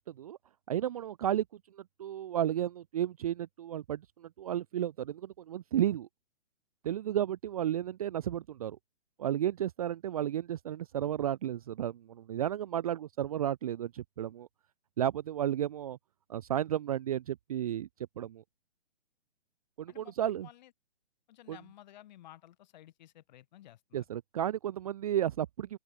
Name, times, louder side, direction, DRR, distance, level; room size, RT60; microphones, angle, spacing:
voice 1, 0.1-0.4 0.7-1.4 1.7-6.1 6.8-8.8 9.2-14.5 15.0-16.0 16.3-17.9 18.2-18.4 19.8-20.5 21.5-21.6 23.9-25.8, right 11 dB, 35° right, 0.5 m, -33 dB
voice 2, 19.9-20.7 21.3-24.1, left 13 dB, 40° left, 2.1 m, -55 dB
open air
hypercardioid pair, 140°, 34 cm